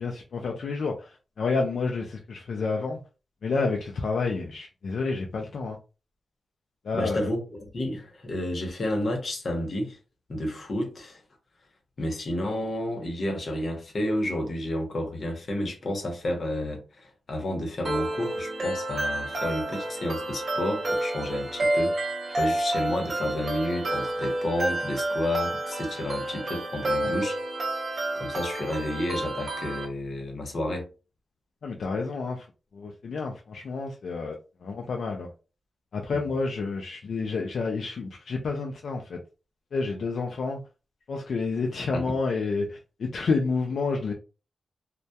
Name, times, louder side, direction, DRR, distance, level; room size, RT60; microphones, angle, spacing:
voice 1, 0.0-3.0 3.4-5.8 6.8-7.3 27.0-27.1 31.6-32.5 32.7-35.3 35.9-39.2 39.7-40.6 41.1-44.1, left 4 dB, 75° left, 0.4 m, -29 dB
voice 2, 6.9-10.0 10.3-11.2 12.0-21.9 22.4-27.4 28.1-30.9 36.1-36.3 41.9-42.2, left 1 dB, 50° left, 0.8 m, -31 dB
sound 1, 17.8-29.8, right 1 dB, 55° right, 0.7 m, -30 dB
2.2 x 2.1 x 2.7 m
wide cardioid pair, 120°, 0 cm